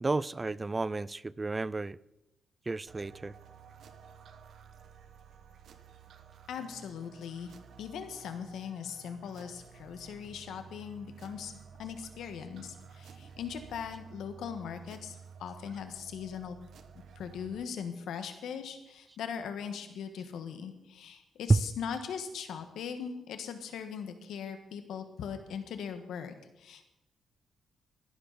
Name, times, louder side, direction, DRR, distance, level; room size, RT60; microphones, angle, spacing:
voice 1, 0.0-2.0 2.7-3.3 21.5-21.6, right 3 dB, 25° right, 21 dB, 0.4 m, -30 dB
sound 1, 2.9-17.6, right 6 dB, 70° right, 1.1 m, -53 dB
voice 2, 6.5-11.5 11.8-16.6 17.1-26.9, left 7 dB, 80° left, 8 dB, 1.5 m, -40 dB
16.0 x 11.5 x 4.2 m, 0.92 s
cardioid pair, 85°, 0 cm